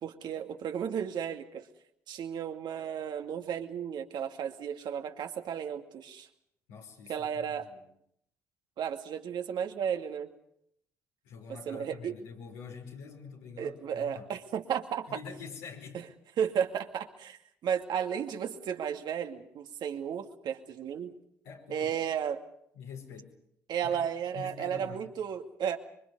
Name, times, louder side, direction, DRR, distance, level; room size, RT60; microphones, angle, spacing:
voice 1, 0.0-1.7 2.1-6.3 7.1-7.7 8.8-10.3 11.5-12.1 13.6-15.1 15.9-16.1 16.4-21.1 21.7-22.4 23.7-25.8, right 8 dB, 65° right, 5 dB, 2.3 m, -34 dB
voice 2, 6.7-7.8 11.2-14.3 15.1-16.0 21.4-21.9 22.7-23.3 23.8-24.1 24.3-25.0, left 6 dB, 80° left, -2 dB, 5.1 m, -46 dB
26.5 x 24.5 x 5.5 m, 0.72 s
hypercardioid pair, 45°, 8 cm